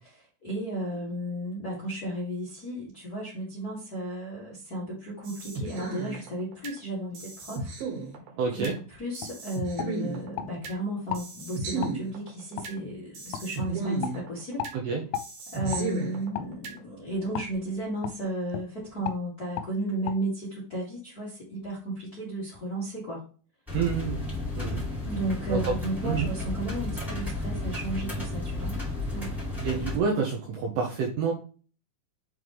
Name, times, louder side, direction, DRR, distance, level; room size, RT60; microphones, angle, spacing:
voice 1, 0.4-7.7 8.5-14.6 15.5-23.2 25.0-28.8 29.1-29.3, right 1 dB, 65° left, -7 dB, 0.9 m, -34 dB
sound 1, 5.2-6.8 7.1-8.8 9.1-10.8 11.1-12.8 13.1-14.8 15.1-16.8, right 3 dB, 60° right, 2.8 m, -35 dB
voice 2, 8.4-8.8 14.7-15.0 23.7-24.2 24.6-24.8 25.5-25.8 26.0-26.3 29.6-31.3, right 5 dB, 75° right, 0 dB, 2.6 m, -28 dB
sound 2, 8.6-8.8 9.2-9.4 9.8-10.5 11.1-11.3 11.8-12.0 12.6-12.7 13.3-13.5 14.0-14.2 14.6-14.8 15.1-15.3 15.7-15.9 16.3-16.5 17.3-17.5 18.0-18.2 18.5-18.7 19.0-19.2 19.6-19.7 20.1-20.2, left 10 dB, 85° left, 3.1 m, -34 dB
sound 3, 23.7-30.0, left 2 dB, ahead, 1.3 m, -32 dB
7.7 x 3.8 x 3.2 m, 0.38 s
omnidirectional pair, 5.6 m